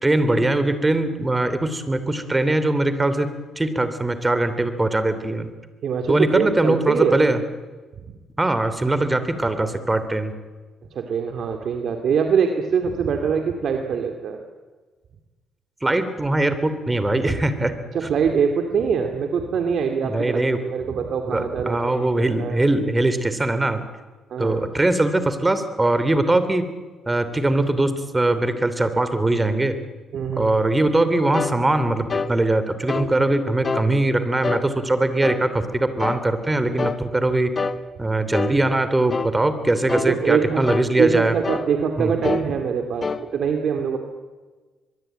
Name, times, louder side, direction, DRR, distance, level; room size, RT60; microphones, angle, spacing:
voice 1, 0.0-5.5 6.1-7.4 8.4-10.3 15.8-17.7 20.0-20.6 21.3-23.8 24.4-26.7 27.1-29.8 30.4-37.5 38.0-41.4 42.0-42.1, right 2 dB, 15° right, 11 dB, 3.0 m, -21 dB
voice 2, 5.8-7.2 8.0-8.1 10.9-14.4 17.9-22.6 24.3-24.7 30.1-30.5 40.0-40.6 41.0-44.0, right 6 dB, 65° right, 5 dB, 2.5 m, -23 dB
sound 1, 31.3-31.6 32.1-32.3 32.9-33.1 33.6-33.9 34.4-34.7 35.2-35.5 36.0-36.2 36.8-37.0 37.6-37.8 38.3-38.6 39.1-39.3 39.9-40.1 40.7-40.9 41.4-41.7 42.2-42.5 43.0-43.2, left 4 dB, 35° left, 1.4 m, -26 dB
23.0 x 22.5 x 9.1 m, 1.3 s
cardioid pair, 90°, 0 cm